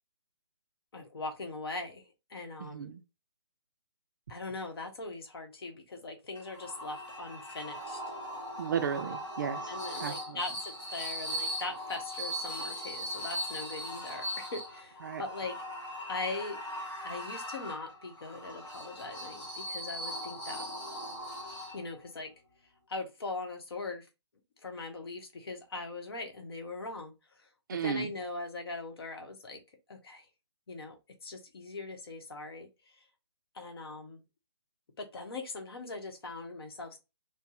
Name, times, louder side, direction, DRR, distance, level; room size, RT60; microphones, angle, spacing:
voice 1, 0.9-2.9 4.3-8.0 9.7-15.6 16.1-16.6 17.0-20.7 21.7-22.3 22.9-24.1 24.6-27.1 27.4-29.6 29.9-30.3 30.7-30.9 31.2-32.7 33.5-34.2 35.0-37.0, left 3 dB, 60° left, 1.0 m, -40 dB
voice 2, 2.6-3.0 8.6-9.6 10.0-10.4 15.1-15.2 27.7-28.1, right 7 dB, 45° right, 0.4 m, -34 dB
sound 1, 6.4-22.1, equal, 15° left, 1.2 m, -39 dB
2.6 x 2.0 x 3.8 m
figure-of-eight pair, 140°, 15 cm